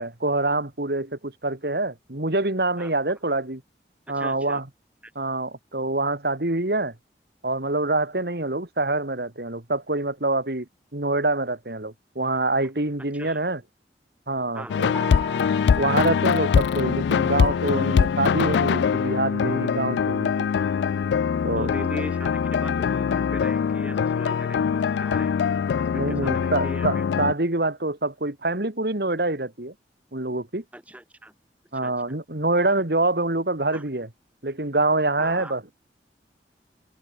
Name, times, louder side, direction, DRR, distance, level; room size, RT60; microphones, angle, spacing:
voice 1, 0.0-3.6 4.1-4.6 5.2-6.9 7.4-10.7 10.9-13.6 14.3-14.9 15.7-20.5 21.4-21.7 25.9-29.7 30.1-30.6 31.7-34.1 34.4-35.6, right 2 dB, 65° right, 2.1 m, -25 dB
voice 2, 4.1-4.6 13.1-13.4 14.5-14.9 21.6-25.3 25.7-27.0 30.7-31.3 31.8-32.2 33.7-33.8 35.2-35.5, right 1 dB, 10° right, 1.4 m, -39 dB
sound 1, 14.7-27.3, left 6 dB, 80° left, 0.3 m, -23 dB
sound 2, 14.9-17.7, left 1 dB, 10° left, 5.1 m, -40 dB
head